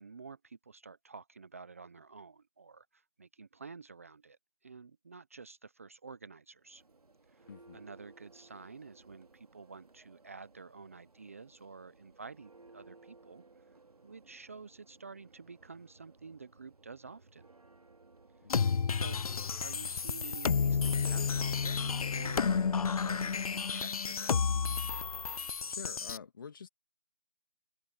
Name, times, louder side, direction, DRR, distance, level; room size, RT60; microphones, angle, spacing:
voice 1, 0.0-6.8 7.3-13.8 14.0-17.5 18.9-19.2 19.6-24.4, right 4 dB, 20° right, 0.7 m, -50 dB
Church bell, 6.5-20.8, right 3 dB, 70° right, 2.8 m, -61 dB
voice 2, 7.5-7.8 18.4-18.9 25.7-26.7, left 6 dB, 35° left, 2.6 m, -47 dB
sound 1, 18.5-26.2, left 6 dB, 70° left, 0.5 m, -31 dB
figure-of-eight pair, 170°, 20 cm